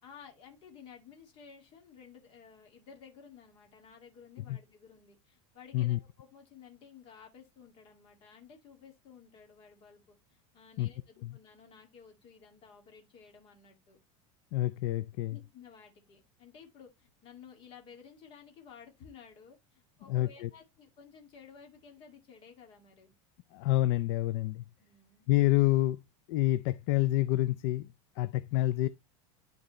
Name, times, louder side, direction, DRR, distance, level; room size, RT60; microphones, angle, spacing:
voice 1, 0.0-14.0 15.3-23.1 24.8-25.3, left 6 dB, 35° left, 2.1 m, -54 dB
voice 2, 14.5-15.4 20.1-20.5 23.5-24.6 25.3-26.0 26.3-28.9, left 16 dB, 50° left, 0.4 m, -28 dB
11.5 x 4.0 x 3.0 m
supercardioid pair, 165°, 17 cm